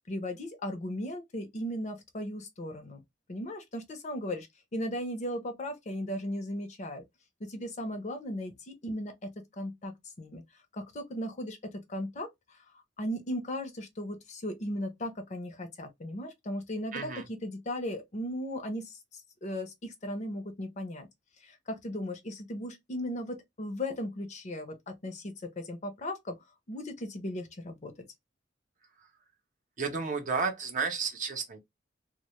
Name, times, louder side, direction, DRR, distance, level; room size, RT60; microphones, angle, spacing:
voice 1, 0.1-3.0 3.3-4.5 4.7-7.0 7.4-10.4 10.7-12.6 13.0-21.1 21.4-26.4 26.7-27.9, left 1 dB, 40° left, 0.6 m, -37 dB
voice 2, 16.9-17.2 29.8-31.6, right 5 dB, 45° right, 0.6 m, -32 dB
2.1 x 2.1 x 2.9 m
head